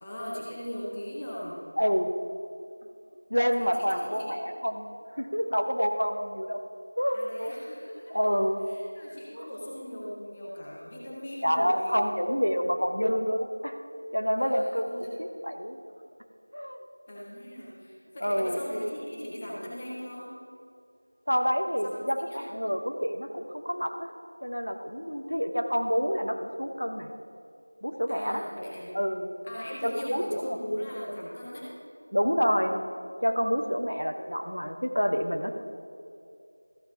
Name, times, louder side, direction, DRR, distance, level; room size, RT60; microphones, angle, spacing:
voice 1, 0.0-1.6 3.6-4.5 7.1-8.3 8.7-12.1 14.4-15.1 17.1-20.3 21.8-22.5 28.1-28.9 29.4-31.7, equal, 10° left, -6 dB, 0.7 m, -38 dB
voice 2, 1.8-2.1 3.3-4.9 5.2-6.6 7.0-7.5 8.1-8.6 9.3-9.5 11.4-13.7 14.1-14.9 15.4-15.8 16.5-16.8 18.2-18.7 21.3-24.1 24.4-27.1 27.8-28.4 28.9-29.4 29.8-30.6 32.1-32.8 33.2-35.6, equal, 85° left, 5 dB, 1.0 m, -28 dB
13.5 x 7.0 x 3.7 m, 2.5 s
figure-of-eight pair, 175°, 0 cm